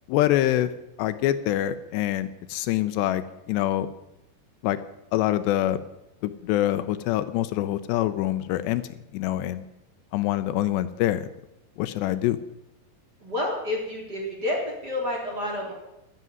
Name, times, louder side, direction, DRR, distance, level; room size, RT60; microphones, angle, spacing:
voice 1, 0.1-0.7 1.0-3.9 4.6-4.8 5.1-5.8 6.2-8.8 9.1-9.6 10.1-11.3 11.8-12.4, left 13 dB, 80° left, 13 dB, 2.9 m, -25 dB
voice 2, 13.2-15.7, left 1 dB, 25° right, -1 dB, 3.8 m, -29 dB
13.5 x 11.0 x 9.4 m, 0.88 s
omnidirectional pair, 5.0 m